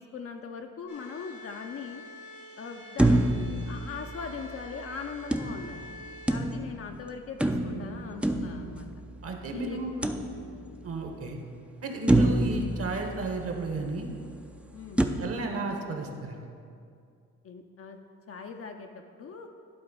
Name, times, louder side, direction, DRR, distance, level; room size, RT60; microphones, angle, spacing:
voice 1, 0.0-2.0 2.6-5.9 6.3-8.9 9.5-10.1 14.7-15.0 17.4-18.0 18.3-19.5, left 5 dB, 50° left, 3 dB, 0.5 m, -40 dB
sound 1, 0.9-6.3, left 1 dB, 80° left, 2.0 m, -47 dB
sound 2, 3.0-4.6 5.3-6.9 7.4-9.3 10.0-10.9 11.4-11.5 12.1-13.8 15.0-15.1, right 1 dB, 5° right, 0.4 m, -27 dB
voice 2, 9.2-9.9 10.8-11.4 11.8-14.1 15.2-16.4, right 2 dB, 50° right, 3 dB, 1.2 m, -33 dB
11.0 x 3.9 x 5.2 m, 2.4 s
cardioid pair, 90°, 30 cm